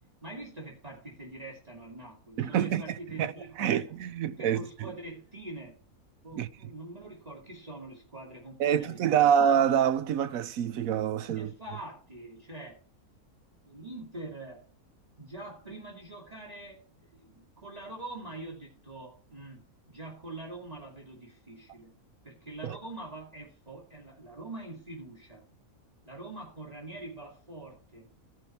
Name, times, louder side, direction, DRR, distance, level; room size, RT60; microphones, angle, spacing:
voice 1, 0.2-3.8 4.2-5.8 6.2-9.3 11.3-12.8 13.6-14.7 15.2-19.6 19.9-21.9 22.2-25.4 26.0-28.1, right 2 dB, 25° right, 2.9 m, -44 dB
voice 2, 2.4-4.9 6.4-6.5 8.6-11.5 22.6-22.8, right 9 dB, 70° right, 1.1 m, -27 dB
14.0 x 5.6 x 5.8 m
omnidirectional pair, 1.5 m